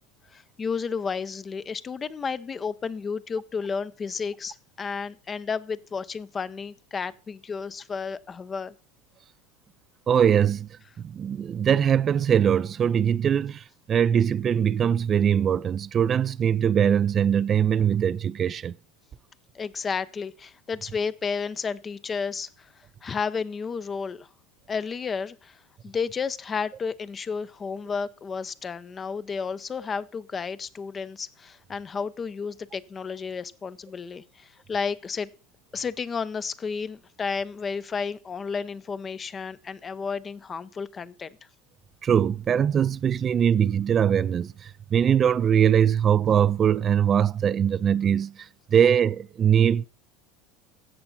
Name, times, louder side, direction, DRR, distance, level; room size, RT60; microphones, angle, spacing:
voice 1, 0.3-8.7 19.5-22.7 23.0-24.3 24.7-35.3 35.7-41.3, left 5 dB, 30° left, 0.7 m, -32 dB
voice 2, 10.1-10.7 11.0-18.7 42.0-49.9, right 8 dB, 35° right, 0.4 m, -22 dB
14.0 x 7.9 x 4.1 m
hypercardioid pair, 80°, 0 cm